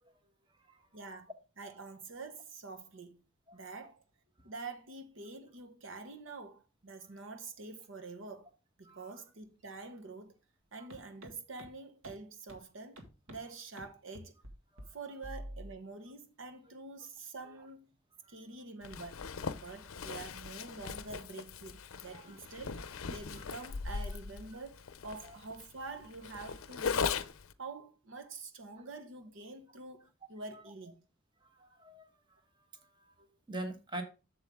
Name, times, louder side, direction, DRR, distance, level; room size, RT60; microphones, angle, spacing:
voice 1, 0.9-1.3 1.6-3.2 3.5-4.0 4.4-8.5 8.8-10.4 10.7-13.0 13.3-14.4 14.9-17.9 18.3-19.2 19.5-27.2 27.6-31.0, right 3 dB, 65° right, 1.0 m, -47 dB
sound 1, 10.9-11.0 11.2-11.3 11.6-11.7 12.0-12.1 12.5-12.6 13.0-13.4 13.8-13.9 14.1-14.5 14.8-14.9 15.2-15.7, equal, 85° right, 1.9 m, -46 dB
Zipper (clothing), 18.8-27.5, left 5 dB, 80° left, 0.6 m, -39 dB
voice 2, 31.4-32.1 32.7-34.0, right 1 dB, 20° right, 1.2 m, -45 dB
7.7 x 7.2 x 3.5 m
head